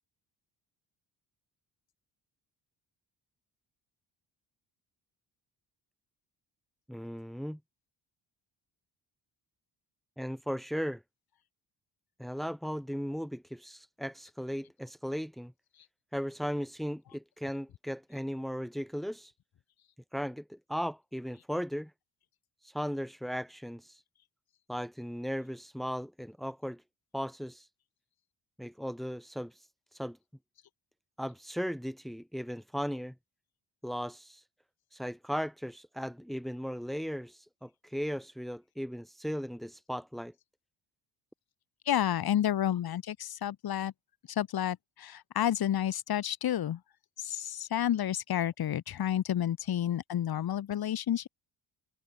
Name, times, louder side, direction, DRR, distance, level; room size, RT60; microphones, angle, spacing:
voice 1, 6.9-7.6 10.2-11.0 12.2-15.5 16.1-19.3 20.1-21.9 22.6-24.0 24.7-26.8 27.1-27.7 28.6-29.7 29.9-30.2 31.2-33.1 33.8-34.4 34.9-40.3, equal, ahead, 4.6 m, -37 dB
voice 2, 41.9-43.9 44.3-46.8 47.2-51.3, left 11 dB, 55° left, 1.3 m, -30 dB
cardioid pair, 115°, 44 cm